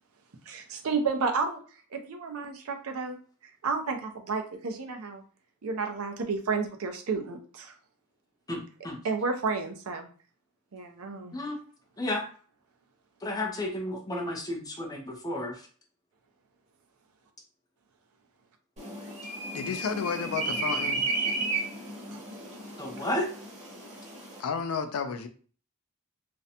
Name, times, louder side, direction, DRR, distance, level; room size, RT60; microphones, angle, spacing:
voice 1, 0.5-1.6 1.9-3.2 3.6-5.2 5.6-7.7 9.0-10.1 10.7-11.3, right 4 dB, 75° right, 0.5 m, -31 dB
voice 2, 8.5-9.0 11.3-11.6 12.0-12.2 13.2-15.5 22.8-23.3, left 1 dB, 15° left, 0.5 m, -32 dB
sound 1, 18.8-24.4, right 3 dB, 30° right, 1.0 m, -33 dB
voice 3, 19.5-21.0 24.4-25.3, left 6 dB, 75° left, 0.4 m, -31 dB
2.5 x 2.1 x 2.7 m
head